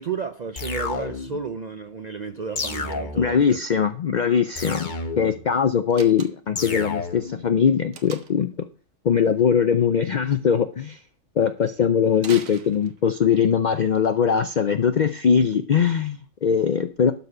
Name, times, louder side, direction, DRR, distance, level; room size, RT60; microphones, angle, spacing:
voice 1, 0.0-3.6 4.8-5.0, right 6 dB, 60° right, 0.4 m, -32 dB
sound 1, 0.6-1.5 2.6-3.5 4.6-5.5 6.6-7.4, left 4 dB, 40° left, 1.0 m, -31 dB
voice 2, 3.2-4.9 5.2-8.5 9.0-11.0 11.4-17.1, left 7 dB, 65° left, 0.4 m, -21 dB
Slam, 5.9-6.7 7.9-8.5 12.2-13.3, right 6 dB, 90° right, 1.4 m, -40 dB
12.0 x 4.2 x 5.4 m
omnidirectional pair, 1.4 m